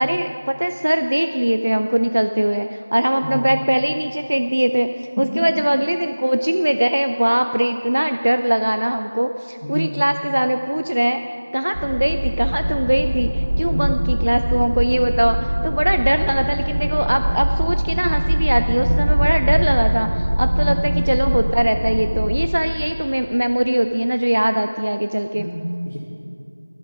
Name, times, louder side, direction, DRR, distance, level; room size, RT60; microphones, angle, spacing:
voice 1, 0.0-11.2 11.5-25.5, right 1 dB, 60° right, 8 dB, 0.5 m, -21 dB
voice 2, 9.6-10.0 13.7-13.9 20.6-20.9 25.3-26.0, equal, 80° left, -8 dB, 2.7 m, -27 dB
sound 1, 11.7-22.6, equal, 25° right, 3.1 m, -21 dB
13.0 x 11.0 x 5.9 m, 2.5 s
figure-of-eight pair, 175°, 0 cm